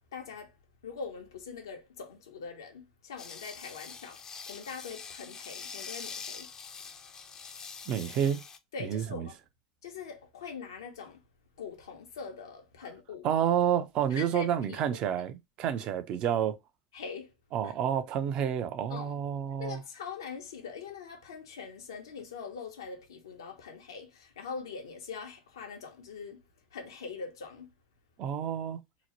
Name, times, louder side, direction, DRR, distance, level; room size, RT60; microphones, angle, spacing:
voice 1, 0.1-0.5 0.8-4.2 4.5-6.5 8.7-9.3 9.8-11.2 11.6-13.3 14.1-15.0 16.9-17.3 17.6-17.7 18.9-19.2 19.6-26.4 26.7-27.7, left 5 dB, 85° left, 0.8 m, -43 dB
sound 1, 3.2-8.6, left 5 dB, 30° left, 0.4 m, -44 dB
voice 2, 7.9-8.4 8.8-9.3 13.2-16.6 17.5-19.8 28.2-28.8, right 9 dB, 50° right, 0.5 m, -29 dB
2.9 x 2.0 x 2.9 m
hypercardioid pair, 95°, 2 cm